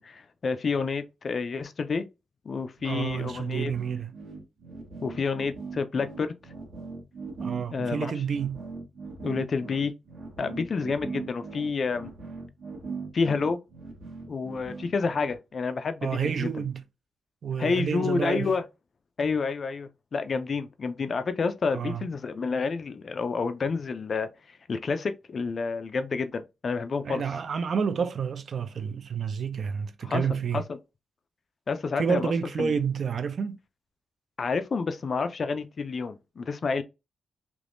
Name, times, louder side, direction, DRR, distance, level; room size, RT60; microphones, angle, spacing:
voice 1, 0.0-2.1 2.5-3.7 5.0-6.3 7.7-8.1 9.2-9.9 10.4-12.1 13.1-13.6 14.3-16.5 17.6-18.6 19.2-27.2 30.0-30.8 31.7-32.3 32.6-32.7 34.4-36.8, left 4 dB, 35° left, 0.3 m, -29 dB
voice 2, 2.8-4.1 7.4-8.6 16.0-16.8 17.4-18.5 21.7-22.1 27.0-30.6 32.0-33.6, right 6 dB, 45° right, 0.3 m, -29 dB
sound 1, 2.8-15.3, right 4 dB, 60° right, 1.1 m, -40 dB
3.4 x 2.9 x 2.5 m
wide cardioid pair, 170°, 0 cm